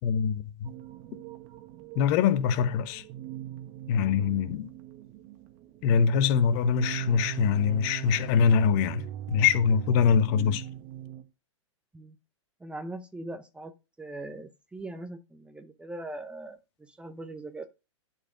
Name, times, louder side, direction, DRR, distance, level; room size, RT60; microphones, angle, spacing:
voice 1, 0.0-0.7 1.9-3.0 3.9-4.7 5.8-10.6, left 7 dB, 40° left, 1.1 m, -24 dB
sound 1, 0.6-11.2, right 12 dB, 40° right, 1.4 m, -40 dB
voice 2, 12.6-13.7 14.0-17.7, right 2 dB, 5° right, 0.7 m, -41 dB
11.5 x 4.6 x 5.0 m
figure-of-eight pair, 110°, 16 cm